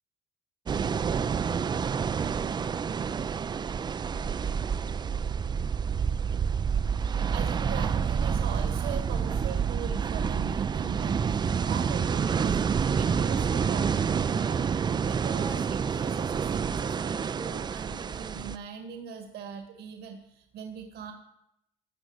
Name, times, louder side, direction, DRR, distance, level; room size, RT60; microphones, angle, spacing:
sound 1, 0.7-18.6, right 6 dB, 25° right, 0.4 m, -28 dB
voice 1, 7.0-21.1, right 7 dB, 75° right, 5 dB, 1.8 m, -40 dB
13.0 x 6.8 x 7.9 m, 0.82 s
cardioid pair, 110°, 17 cm